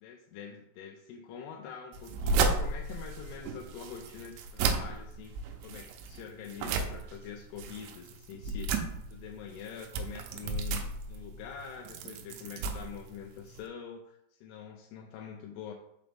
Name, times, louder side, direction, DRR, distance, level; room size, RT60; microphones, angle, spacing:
voice 1, 0.0-5.3 5.6-15.7, left 7 dB, 85° left, 2 dB, 2.6 m, -45 dB
sound 1, 1.9-13.7, right 4 dB, 90° right, 2.9 m, -34 dB
5.7 x 5.1 x 3.5 m, 0.79 s
omnidirectional pair, 4.9 m